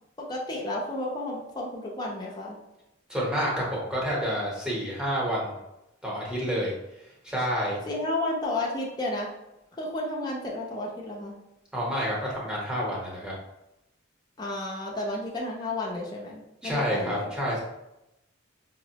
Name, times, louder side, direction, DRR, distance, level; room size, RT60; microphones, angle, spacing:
voice 1, 0.2-2.6 7.9-9.3 9.8-11.4 14.4-17.3, left 2 dB, 20° left, -4 dB, 0.5 m, -32 dB
voice 2, 3.1-5.6 6.0-6.7 7.2-7.8 11.7-13.3 16.6-17.6, equal, 5° right, -5 dB, 0.8 m, -29 dB
5.0 x 2.0 x 2.7 m, 0.89 s
head